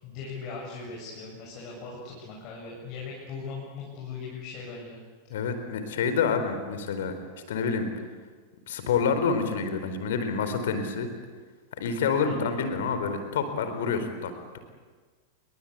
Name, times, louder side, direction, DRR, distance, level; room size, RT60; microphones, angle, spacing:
voice 1, 0.0-5.0 12.2-12.5, left 4 dB, 40° left, -3 dB, 7.5 m, -39 dB
voice 2, 5.3-7.1 7.5-7.9 8.7-11.1 11.8-14.3, left 5 dB, 60° left, 9 dB, 4.2 m, -27 dB
29.5 x 23.5 x 8.4 m, 1.4 s
figure-of-eight pair, 90°, 0 cm